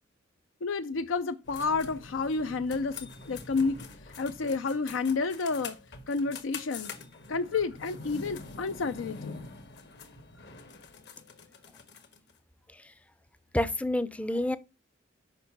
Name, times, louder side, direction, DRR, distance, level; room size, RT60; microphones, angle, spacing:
voice 1, 0.6-3.8 4.2-5.8 6.1-6.9 7.3-9.4, left 4 dB, 80° left, 0.5 m, -30 dB
sound 1, 1.5-12.3, left 4 dB, 60° left, 1.4 m, -45 dB
voice 2, 13.5-14.6, left 1 dB, 5° left, 0.4 m, -28 dB
6.7 x 5.4 x 6.0 m
head